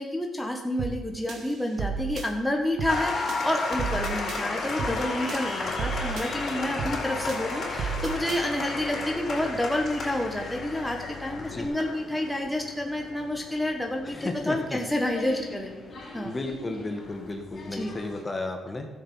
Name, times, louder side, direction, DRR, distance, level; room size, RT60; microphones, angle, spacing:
voice 1, 0.0-15.7 16.1-16.3 17.7-17.9, left 1 dB, 5° left, 2 dB, 1.4 m, -29 dB
sound 1, 0.8-1.0 1.3-2.3 2.8-3.0 3.3-4.4 4.8-5.0 5.3-6.3 6.8-7.0 7.3-8.4, right 6 dB, 65° right, 1.6 m, -33 dB
Applause, 2.9-18.2, left 3 dB, 50° left, 4.1 m, -34 dB
sound 2, 5.6-11.7, left 6 dB, 75° left, 1.2 m, -46 dB
voice 2, 11.4-11.7 14.0-14.8 16.2-18.9, left 2 dB, 25° left, 4 dB, 1.5 m, -33 dB
13.0 x 7.4 x 5.6 m, 1.2 s
cardioid pair, 90°, 0 cm